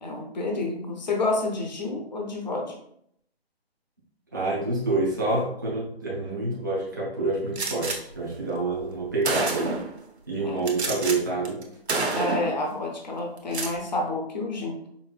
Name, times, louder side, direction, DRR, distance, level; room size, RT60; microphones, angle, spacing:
voice 1, 0.0-2.7 10.4-10.6 12.1-14.8, left 2 dB, 45° left, 1 dB, 0.7 m, -29 dB
voice 2, 4.3-9.8 10.3-11.6, right 2 dB, 20° right, -7 dB, 0.6 m, -27 dB
Gunshot gunfire, 7.6-8.0 8.8-8.9 9.2-9.9 10.7-11.2 11.5-11.6 11.9-12.6 13.4-13.8, right 3 dB, 90° right, 0.9 m, -28 dB
5.2 x 2.5 x 2.3 m, 0.70 s
hypercardioid pair, 170°, 32 cm